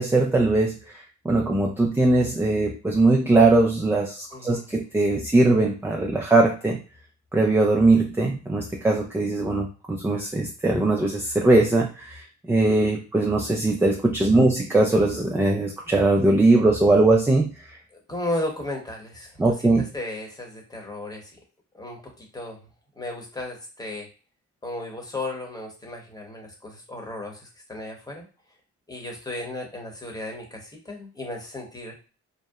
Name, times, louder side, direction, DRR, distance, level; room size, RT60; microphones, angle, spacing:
voice 1, 0.0-6.8 7.3-17.8 19.4-19.8, right 2 dB, 10° right, 0 dB, 0.3 m, -20 dB
voice 2, 4.3-4.7 14.3-14.5 17.9-21.3 21.7-22.6 23.0-24.1 24.6-28.3 28.9-31.9, left 2 dB, 10° left, 1 dB, 0.9 m, -35 dB
2.7 x 2.1 x 2.3 m, 0.35 s
cardioid pair, 90°, 30 cm